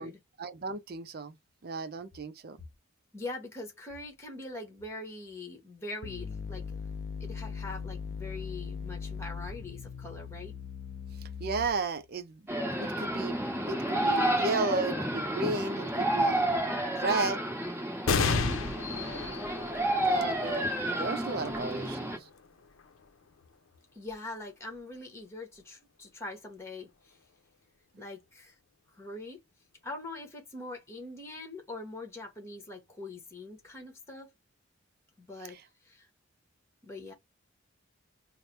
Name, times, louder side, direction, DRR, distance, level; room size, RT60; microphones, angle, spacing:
voice 1, 0.4-1.4 1.6-2.6 11.4-16.4 16.9-17.4 20.0-22.3 35.5-35.6, right 3 dB, 50° right, 0.5 m, -34 dB
voice 2, 3.1-6.8 7.2-10.5 23.9-27.2 28.0-28.6 28.9-29.4 29.8-34.3 35.2-35.6 35.8-36.1 36.8-37.1, left 2 dB, 15° left, 1.1 m, -43 dB
sound 1, 6.0-12.0, left 5 dB, 50° left, 0.3 m, -39 dB
sound 2, 12.5-22.2, right 1 dB, 10° right, 1.3 m, -30 dB
sound 3, 18.1-25.0 25.6-25.7 26.8-27.3, left 5 dB, 90° left, 0.6 m, -35 dB
3.2 x 2.1 x 4.2 m
head